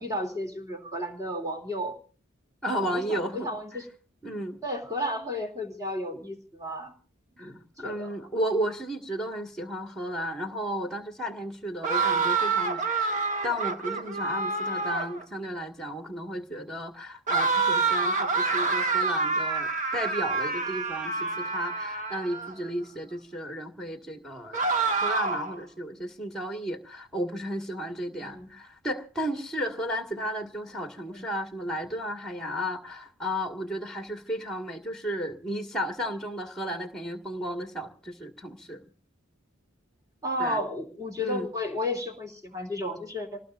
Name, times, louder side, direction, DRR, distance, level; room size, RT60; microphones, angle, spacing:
voice 1, 0.0-2.0 2.6-3.8 4.6-6.9 7.4-8.1 28.2-28.5 31.1-31.3 40.2-43.4, left 1 dB, 15° right, 3 dB, 3.0 m, -33 dB
voice 2, 2.6-3.5 4.2-4.6 7.4-7.5 7.8-13.1 13.4-24.6 25.0-38.8 40.4-40.6 41.2-41.5, equal, ahead, 4 dB, 1.8 m, -33 dB
sound 1, 11.8-15.2 17.3-22.5 24.5-25.6, right 4 dB, 35° right, 1.3 m, -27 dB
27.0 x 19.0 x 2.6 m, 0.40 s
head